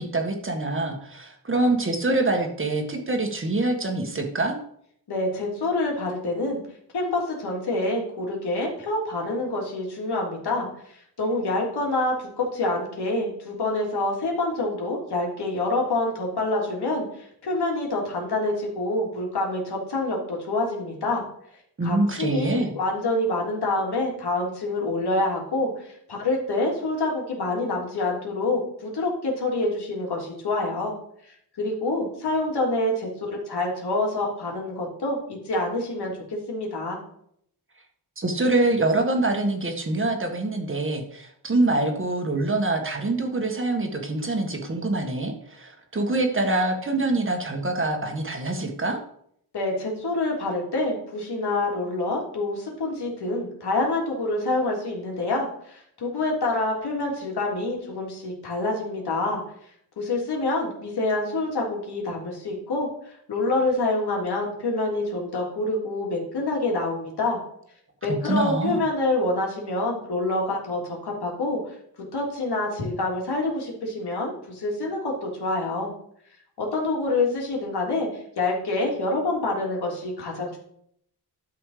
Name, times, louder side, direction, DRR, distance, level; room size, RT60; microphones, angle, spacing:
voice 1, 0.0-4.6 21.8-22.7 38.2-49.0 68.2-68.8, right 2 dB, 30° right, 3 dB, 1.8 m, -25 dB
voice 2, 5.1-6.6 6.9-10.7 11.2-21.2 21.8-30.9 31.6-33.1 33.5-37.0 49.5-59.4 60.0-67.4 68.0-71.6 72.1-75.9 76.6-78.1 78.4-80.6, left 2 dB, 70° left, -1 dB, 3.5 m, -27 dB
11.5 x 6.7 x 5.1 m, 0.68 s
wide cardioid pair, 125°, 41 cm